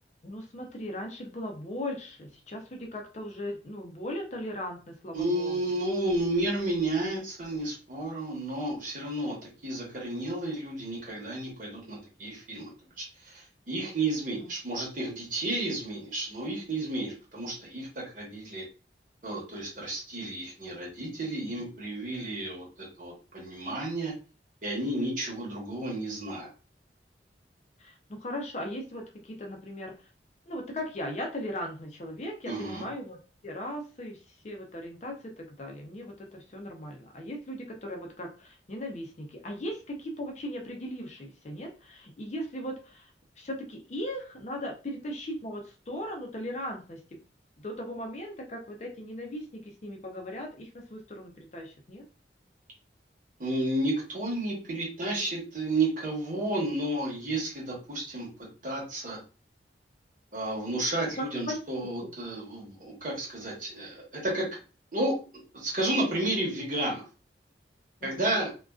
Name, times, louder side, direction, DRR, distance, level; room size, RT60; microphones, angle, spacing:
voice 1, 0.2-5.6 27.8-30.1 30.5-43.1 43.4-47.2 47.6-52.0 61.2-61.6 62.0-62.1 68.0-68.4, left 1 dB, 40° left, 2 dB, 0.4 m, -38 dB
voice 2, 5.1-9.4 9.6-18.6 19.2-24.1 24.6-26.5 32.4-32.8 53.4-59.2 60.3-64.5 64.9-65.2 65.5-67.0 68.0-68.5, right 2 dB, 45° right, -3 dB, 1.0 m, -32 dB
2.4 x 2.2 x 2.3 m, 0.34 s
head